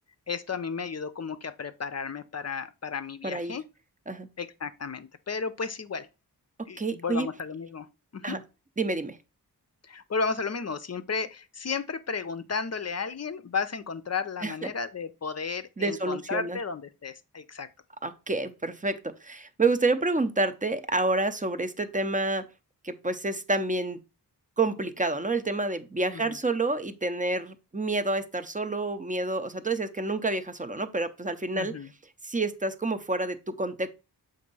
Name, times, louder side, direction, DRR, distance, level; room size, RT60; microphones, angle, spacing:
voice 1, 0.3-3.6 4.4-6.1 6.7-8.4 9.8-17.7 26.1-26.4 31.5-31.9, left 5 dB, 40° left, 0.5 m, -33 dB
voice 2, 3.2-3.5 4.1-4.3 6.6-7.3 8.2-8.4 8.8-9.2 14.4-14.5 15.8-16.6 18.0-22.4 22.8-24.0 24.6-31.7 32.2-33.9, right 2 dB, 20° right, 0.6 m, -28 dB
7.4 x 2.6 x 5.4 m
wide cardioid pair, 100°, 39 cm